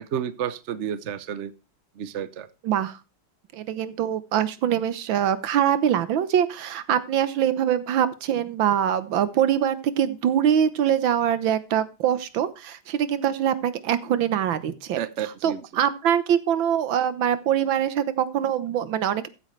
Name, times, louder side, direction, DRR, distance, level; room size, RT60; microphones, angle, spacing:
voice 1, 0.1-1.5 2.0-2.5 15.0-15.6, right 9 dB, 55° right, 0.8 m, -31 dB
voice 2, 2.6-3.0 3.5-15.0 15.4-19.3, right 9 dB, 75° right, 1.7 m, -23 dB
14.5 x 8.6 x 3.2 m
omnidirectional pair, 2.2 m